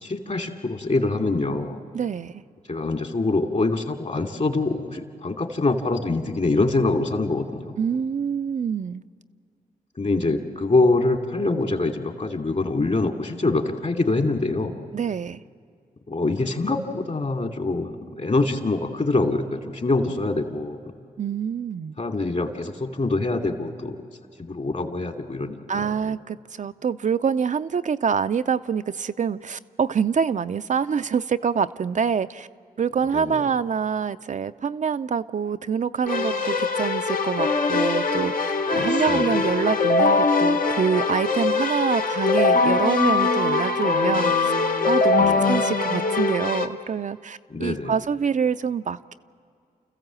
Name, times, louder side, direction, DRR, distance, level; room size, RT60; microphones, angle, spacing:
voice 1, 0.0-1.8 2.7-7.7 10.0-14.7 16.1-20.8 22.0-24.0 24.4-26.1 33.1-33.4 38.7-39.4 45.2-45.5 47.5-47.9, left 2 dB, 50° left, 4 dB, 2.6 m, -25 dB
voice 2, 1.9-2.4 7.8-9.0 14.9-15.4 21.2-21.9 25.7-32.5 32.8-44.5 44.9-49.1, right 6 dB, 55° right, 10 dB, 0.5 m, -26 dB
Keyboard (musical), 36.1-46.7, left 4 dB, 65° left, 1.4 m, -22 dB
29.5 x 14.5 x 7.6 m, 2.3 s
supercardioid pair, 45°, 16 cm